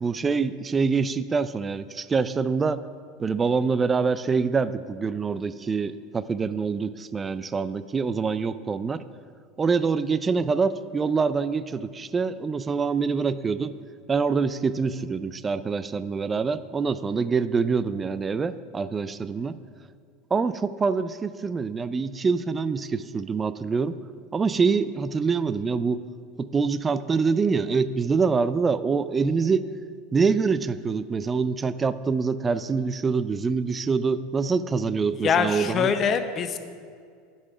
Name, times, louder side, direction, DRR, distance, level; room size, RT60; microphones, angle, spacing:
voice 1, 0.0-2.8 3.2-9.0 9.6-13.7 14.1-19.6 20.3-24.0 24.3-26.0 26.4-29.6 30.1-35.9, right 5 dB, 20° right, 14 dB, 0.4 m, -25 dB
voice 2, 35.2-36.6, left 6 dB, 35° left, 9 dB, 0.8 m, -23 dB
11.5 x 5.5 x 6.0 m, 2.1 s
hypercardioid pair, 100°, 0 cm